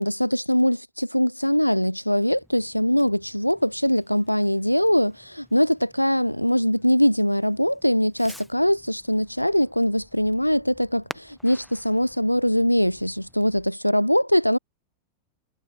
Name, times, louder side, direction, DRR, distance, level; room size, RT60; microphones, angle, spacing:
voice 1, 0.0-14.6, equal, 90° left, 1.4 m, -22 dB
Fireworks, 2.3-13.7, equal, ahead, 7.0 m, -49 dB
figure-of-eight pair, 90°, 0 cm